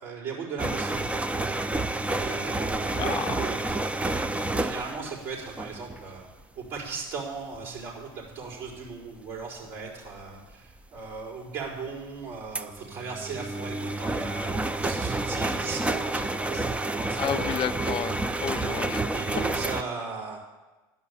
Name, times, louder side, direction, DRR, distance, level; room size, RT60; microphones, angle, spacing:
voice 1, 0.0-1.0 2.1-6.3 6.6-17.5 19.1-20.4, right 4 dB, 70° right, -6 dB, 4.6 m, -37 dB
sound 1, 0.6-6.2 6.6-6.9 7.5-7.8 8.4-8.7 10.5-10.6 11.2-11.3 11.6-11.7 12.5-19.8, right 2 dB, 10° right, 0.4 m, -29 dB
voice 2, 3.0-3.3 17.2-19.0, left 10 dB, 45° left, 11 dB, 0.5 m, -31 dB
11.5 x 5.5 x 8.4 m, 1.1 s
supercardioid pair, 90°, 12 cm